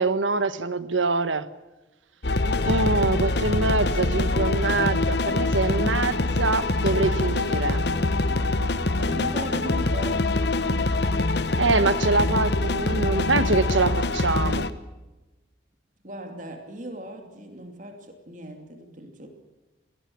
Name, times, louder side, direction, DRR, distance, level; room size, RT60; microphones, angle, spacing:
voice 1, 0.0-1.5 2.6-7.8 11.6-14.7, right 3 dB, 80° right, 13 dB, 1.4 m, -24 dB
sound 1, 2.2-14.7, left 2 dB, 60° left, 1.1 m, -24 dB
voice 2, 8.9-10.3 16.0-19.3, right 1 dB, 40° right, 5 dB, 2.8 m, -38 dB
21.5 x 18.0 x 8.7 m, 1.1 s
head